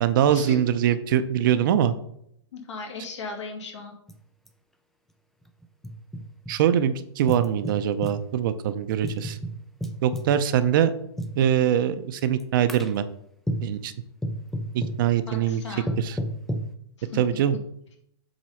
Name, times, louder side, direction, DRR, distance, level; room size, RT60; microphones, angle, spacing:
voice 1, 0.0-1.9 6.5-9.4 10.0-10.9 11.4-13.0 13.6-13.9 14.7-15.6 16.0-16.2 17.1-17.6, right 9 dB, 45° right, 11 dB, 0.6 m, -23 dB
voice 2, 2.5-3.9 15.3-15.9 17.0-17.2, left 4 dB, 75° left, 2 dB, 2.4 m, -37 dB
sound 1, 4.1-4.2 4.5-4.6 5.4-6.6 7.3-8.2 9.0-10.4 11.2-11.4 12.2-12.4 12.7-13.0 13.5-13.8 14.2-15.0 15.9-16.7, right 1 dB, ahead, 0.4 m, -31 dB
7.7 x 4.1 x 5.6 m, 0.71 s
hypercardioid pair, 155°, 15 cm